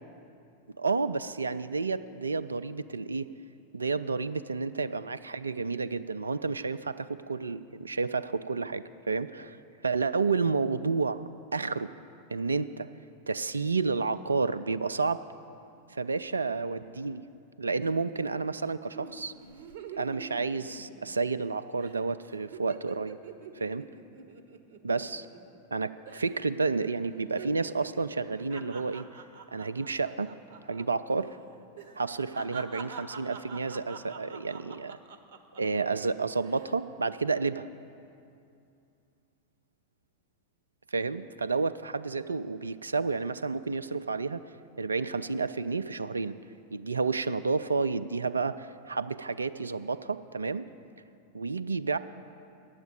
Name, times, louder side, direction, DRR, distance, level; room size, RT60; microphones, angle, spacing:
voice 1, 0.8-3.3 3.7-9.6 9.8-11.2 11.5-11.9 12.3-12.9 13.3-15.2 15.9-17.2 17.6-19.3 20.0-23.2 23.6-23.8 24.8-25.3 25.7-29.0 29.5-30.3 30.7-31.3 32.0-35.0 35.6-37.7 40.9-44.4 44.8-46.3 46.7-50.7 51.3-52.0, right 4 dB, 75° right, 14 dB, 0.3 m, -30 dB
sound 1, 18.9-21.5 21.8-22.0 22.3-25.7 26.1-26.5 26.8-30.9 31.1-31.3 31.8-35.8 36.3-36.8, right 6 dB, 55° right, 0.8 m, -46 dB
9.1 x 7.9 x 8.7 m, 2.5 s
figure-of-eight pair, 90°, 0 cm